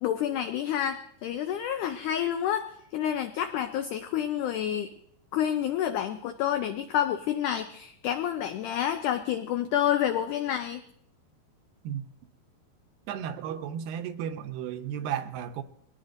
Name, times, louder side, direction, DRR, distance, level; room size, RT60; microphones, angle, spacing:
voice 1, 0.0-4.9 5.3-10.8, left 10 dB, 85° left, 1.7 m, -29 dB
voice 2, 13.1-15.6, right 9 dB, 80° right, 2.4 m, -34 dB
21.0 x 18.5 x 2.6 m
omnidirectional pair, 4.4 m